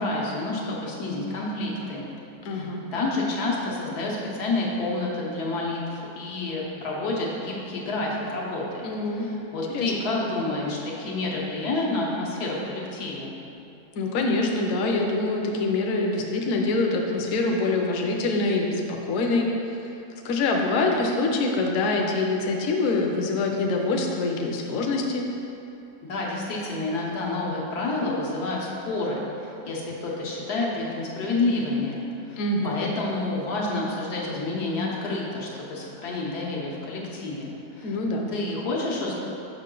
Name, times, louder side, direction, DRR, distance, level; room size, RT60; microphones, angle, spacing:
voice 1, 0.0-2.0 2.5-8.9 9.2-13.3 26.1-32.0 32.3-37.9 38.3-39.2, left 2 dB, 90° left, -3 dB, 1.6 m, -29 dB
voice 2, 2.4-2.8 8.8-9.3 9.7-9.9 14.0-19.8 20.2-25.3 32.4-32.8 37.8-38.3, left 3 dB, 65° left, 1 dB, 1.0 m, -25 dB
6.5 x 5.3 x 3.8 m, 2.8 s
omnidirectional pair, 1.6 m